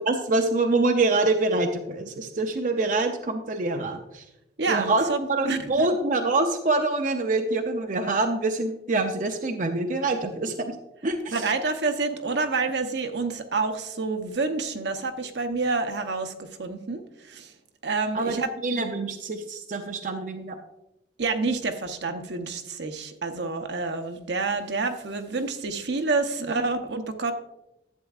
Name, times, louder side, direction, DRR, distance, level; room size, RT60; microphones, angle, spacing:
voice 1, 0.0-4.2 4.7-5.0 5.3-10.8 11.0-11.5 18.1-20.6 26.4-26.7, right 2 dB, 45° right, 5 dB, 0.5 m, -25 dB
voice 2, 4.6-5.6 11.3-17.5 17.8-18.5 21.2-27.3, right 3 dB, 75° right, 6 dB, 0.8 m, -28 dB
11.0 x 8.2 x 2.4 m, 0.92 s
head